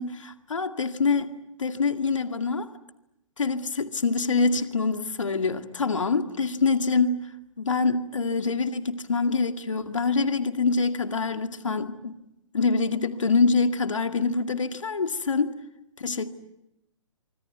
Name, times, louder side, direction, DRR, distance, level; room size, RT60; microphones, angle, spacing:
voice 1, 0.0-2.7 3.4-7.2 7.6-12.1 12.5-15.6 16.0-16.3, left 4 dB, 65° left, 2.1 m, -25 dB
25.0 x 25.0 x 9.3 m
figure-of-eight pair, 130°, 17 cm